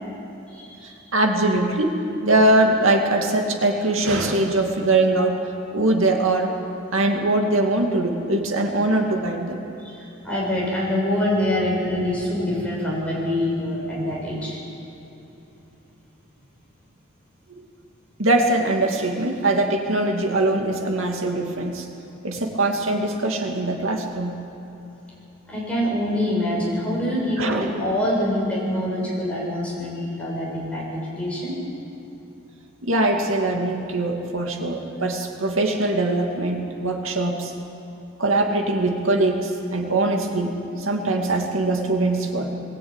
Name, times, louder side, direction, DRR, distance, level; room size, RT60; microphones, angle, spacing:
voice 1, 0.5-0.9 9.8-14.6 25.5-31.5, left 1 dB, 5° left, -5 dB, 7.1 m, -25 dB
voice 2, 1.1-6.5 6.9-9.6 18.2-21.9 22.2-24.4 27.4-27.7 32.8-37.5 38.2-42.5, right 2 dB, 75° right, 2 dB, 2.5 m, -22 dB
21.5 x 17.5 x 9.2 m, 3.0 s
head